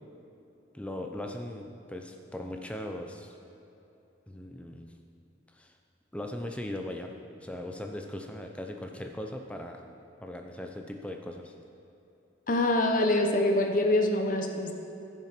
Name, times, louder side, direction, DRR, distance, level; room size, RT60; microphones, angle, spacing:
voice 1, 0.7-3.4 4.3-4.9 5.5-5.7 6.1-7.1 7.4-9.8 10.2-11.5, left 1 dB, 5° left, 3 dB, 0.5 m, -39 dB
voice 2, 12.5-14.7, left 1 dB, 45° left, 4 dB, 0.7 m, -25 dB
14.0 x 5.9 x 4.4 m, 2.9 s
head